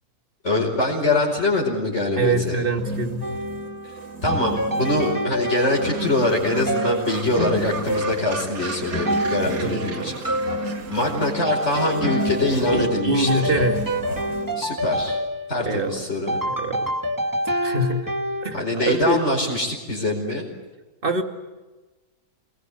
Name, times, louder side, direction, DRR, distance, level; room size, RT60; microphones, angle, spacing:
voice 1, 0.4-2.5 4.2-10.1 10.9-13.5 14.6-15.2 15.5-16.4 18.5-20.5, left 2 dB, 45° left, -3 dB, 5.1 m, -23 dB
voice 2, 2.2-3.3 9.7-10.1 12.7-13.8 15.6-16.0 16.5-16.9 17.6-18.1 18.4-19.2 21.0-21.2, right 2 dB, 35° right, 4 dB, 2.6 m, -24 dB
sound 1, 2.8-14.6, right 3 dB, 50° right, 3.3 m, -33 dB
sound 2, 3.2-18.4, equal, 15° right, 1.2 m, -28 dB
Gull seagull, 5.5-11.4, right 5 dB, 85° right, 2.5 m, -37 dB
27.5 x 20.5 x 8.3 m, 1.2 s
omnidirectional pair, 1.7 m